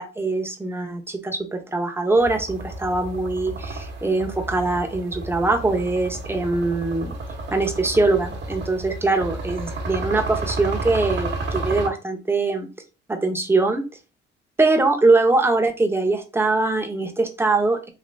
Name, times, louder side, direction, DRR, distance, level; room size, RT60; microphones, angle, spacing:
voice 1, 0.0-7.1 7.5-12.7 13.1-13.8 14.6-17.9, right 3 dB, 10° right, 4 dB, 0.7 m, -22 dB
sound 1, 2.2-11.9, right 2 dB, 60° right, 0.9 m, -31 dB
3.2 x 2.7 x 2.6 m, 0.31 s
cardioid pair, 90°, 20 cm